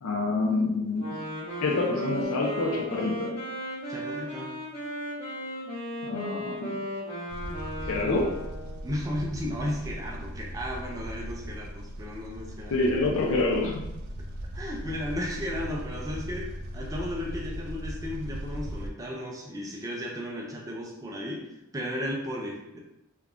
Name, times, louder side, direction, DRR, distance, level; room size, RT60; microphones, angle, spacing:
voice 1, 0.0-1.2 1.6-3.3 6.0-6.8 7.8-8.3 12.7-13.8, left 2 dB, 70° left, -1 dB, 0.4 m, -27 dB
Wind instrument woodwind instrument, 0.9-8.9, equal, 10° left, 1.0 m, -36 dB
voice 2, 3.9-4.5 8.8-12.9 14.5-22.8, left 1 dB, 15° right, -1 dB, 0.3 m, -34 dB
sound 1, 7.3-18.9, equal, 85° right, 0.4 m, -38 dB
3.4 x 2.2 x 2.4 m, 0.90 s
head